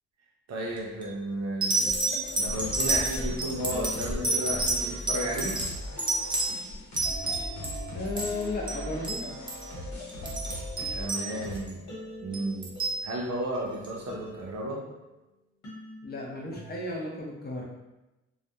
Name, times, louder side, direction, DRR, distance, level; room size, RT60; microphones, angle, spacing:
voice 1, 0.5-2.0 2.4-5.6 10.9-11.9 12.2-14.9, right 1 dB, 65° right, -1 dB, 0.6 m, -33 dB
sound 1, 0.8-1.0 1.6-7.8 8.1-8.8 9.0-9.2 9.5-9.7 10.1-11.7 12.3-13.0 13.8-13.9, right 2 dB, 15° right, 0.5 m, -29 dB
sound 2, 1.7-15.1 15.6-16.8, equal, 85° left, 1.2 m, -45 dB
sound 3, 2.2-11.6, left 1 dB, 65° left, 0.9 m, -40 dB
voice 2, 7.9-9.3 16.0-17.6, left 2 dB, 35° left, -2 dB, 0.6 m, -34 dB
2.3 x 2.1 x 2.7 m, 0.99 s
cardioid pair, 105°, 29 cm